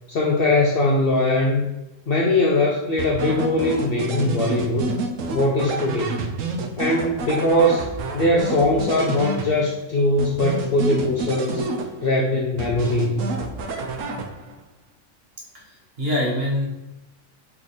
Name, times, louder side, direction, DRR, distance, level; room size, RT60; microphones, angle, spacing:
voice 1, 0.1-1.6 2.1-4.9 5.3-6.2 6.8-7.8 8.1-11.6 12.0-13.3, left 1 dB, 60° left, -1 dB, 0.6 m, -21 dB
sound 1, 3.0-9.8 10.2-12.2 12.6-14.6, right 3 dB, 75° right, 1.0 m, -29 dB
voice 2, 15.5-16.7, left 1 dB, 50° right, -3 dB, 1.2 m, -25 dB
3.3 x 3.1 x 4.1 m, 0.94 s
omnidirectional pair, 1.4 m